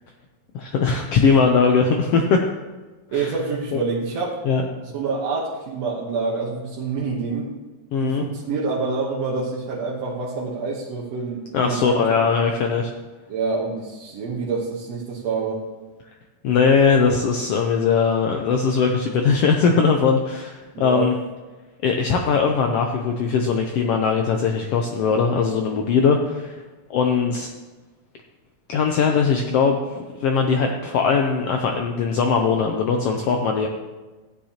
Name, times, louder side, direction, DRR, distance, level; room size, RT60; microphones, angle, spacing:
voice 1, 0.5-2.4 3.1-3.3 4.4-4.6 7.9-8.2 11.5-12.9 16.4-21.1 21.8-26.6 26.9-27.5 28.7-29.8 30.2-33.7, left 5 dB, 80° left, 3 dB, 1.4 m, -20 dB
voice 2, 3.1-4.4 4.8-7.5 8.0-12.0 13.3-15.6 20.7-21.1 26.0-26.1, right 4 dB, 65° right, -4 dB, 2.1 m, -27 dB
15.0 x 9.1 x 2.9 m, 1.2 s
omnidirectional pair, 3.5 m